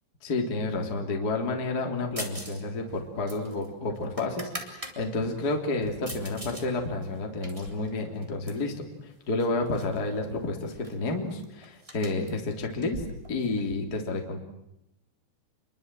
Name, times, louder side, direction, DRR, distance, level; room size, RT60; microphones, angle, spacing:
voice 1, 0.2-13.0 13.3-14.4, left 2 dB, 25° left, 2 dB, 3.1 m, -30 dB
sound 1, 2.2-2.6 2.9-5.0 5.4-6.7 7.0-8.7 9.4-10.0 10.2-10.3 10.6-13.7, right 1 dB, 10° right, 2.8 m, -42 dB
29.5 x 23.0 x 7.7 m, 0.86 s
omnidirectional pair, 5.5 m